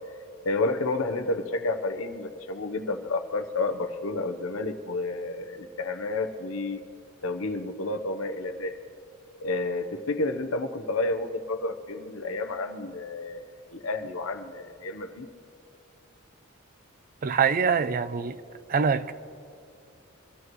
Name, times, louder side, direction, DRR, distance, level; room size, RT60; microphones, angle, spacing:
voice 1, 0.4-6.8 7.2-8.8 9.4-13.4 13.7-15.3, left 2 dB, 80° left, 0.9 m, -30 dB
voice 2, 17.2-18.4 18.7-19.1, right 6 dB, 45° right, 0.4 m, -24 dB
24.0 x 13.5 x 3.1 m
head